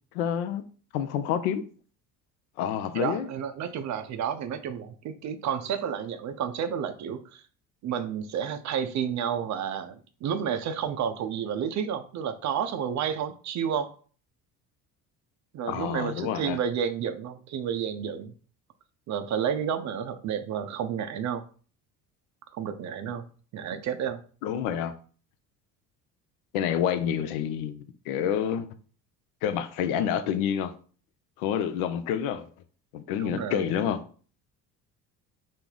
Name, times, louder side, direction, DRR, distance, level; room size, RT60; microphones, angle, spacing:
voice 1, 0.1-0.6 0.9-1.6 2.6-3.3 15.7-16.6 24.4-24.9 26.5-28.7 29.4-30.8 31.4-32.5 32.9-34.0, left 9 dB, 65° left, 0.6 m, -28 dB
voice 2, 2.9-7.4 7.8-13.9 15.5-18.3 19.1-21.4 22.5-23.2 23.5-24.2 33.2-33.7, right 8 dB, 40° right, 0.5 m, -31 dB
3.3 x 2.0 x 3.8 m
hypercardioid pair, 60°, 48 cm